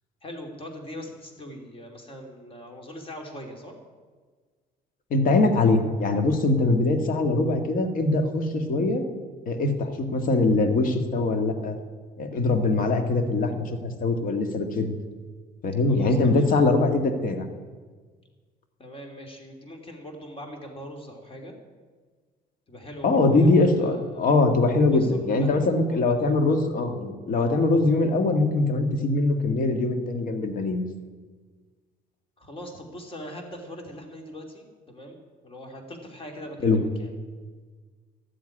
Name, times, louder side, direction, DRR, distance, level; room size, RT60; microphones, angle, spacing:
voice 1, 0.2-3.8 15.9-16.5 18.8-21.5 22.7-24.4 24.9-26.0 32.4-37.1, equal, 30° left, 3 dB, 2.9 m, -41 dB
voice 2, 5.1-9.1 9.5-11.8 12.2-15.0 15.6-17.5 23.0-30.8 36.6-36.8, left 2 dB, 55° left, 6 dB, 1.8 m, -22 dB
13.0 x 7.7 x 9.8 m, 1.5 s
cardioid pair, 110°, 17 cm